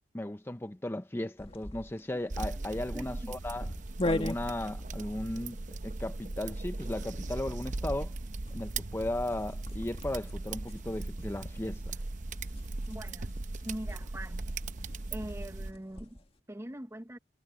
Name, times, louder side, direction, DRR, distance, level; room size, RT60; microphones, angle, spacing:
voice 1, 0.1-3.6 4.0-8.1 8.5-11.8, left 1 dB, 15° left, 0.6 m, -36 dB
sound 1, 1.4-16.3, left 1 dB, 35° left, 1.8 m, -42 dB
sound 2, 2.3-15.7, right 2 dB, 45° right, 0.7 m, -38 dB
voice 2, 2.9-3.3 12.9-13.3 13.6-14.6 15.1-17.2, right 1 dB, 15° right, 1.1 m, -42 dB
head